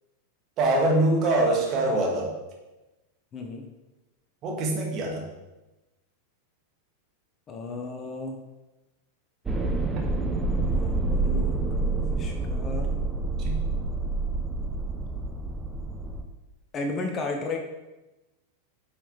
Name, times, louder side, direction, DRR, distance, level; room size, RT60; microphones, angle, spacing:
voice 1, 0.6-2.4 4.4-5.2 13.4-13.9, right 2 dB, 35° right, -1 dB, 2.1 m, -24 dB
voice 2, 3.3-3.6 7.5-8.4 10.7-13.0 16.7-17.6, left 3 dB, 25° left, 4 dB, 1.0 m, -34 dB
sound 1, 9.5-16.2, right 3 dB, 15° right, 0.9 m, -27 dB
9.6 x 5.6 x 3.5 m, 1.1 s
figure-of-eight pair, 90°, 0 cm